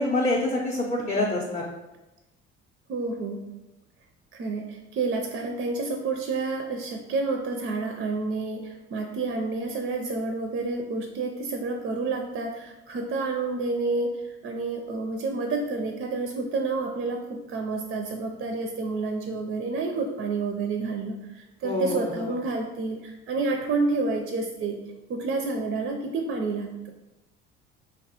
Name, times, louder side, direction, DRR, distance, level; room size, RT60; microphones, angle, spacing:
voice 1, 0.0-1.6 21.6-22.3, left 2 dB, 20° left, -3 dB, 0.5 m, -26 dB
voice 2, 2.9-3.4 4.3-24.8 25.1-26.9, right 3 dB, 35° right, 3 dB, 0.4 m, -29 dB
3.1 x 2.1 x 2.9 m, 1.0 s
hypercardioid pair, 60°, 33 cm